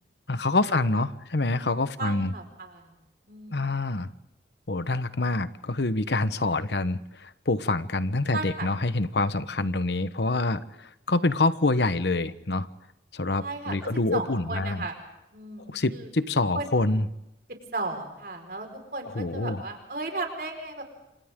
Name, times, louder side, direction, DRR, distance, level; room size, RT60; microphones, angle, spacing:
voice 1, 0.3-2.3 3.5-4.1 4.7-12.7 13.1-14.9 15.7-17.1 19.1-19.6, left 2 dB, 75° left, 13 dB, 1.1 m, -26 dB
voice 2, 2.0-2.9 3.3-3.8 8.3-8.7 13.4-13.8 14.1-15.0 15.3-16.1 16.5-16.7 17.7-18.7 18.9-20.8, right 3 dB, 55° right, 4 dB, 4.8 m, -35 dB
29.0 x 26.5 x 3.8 m, 0.88 s
head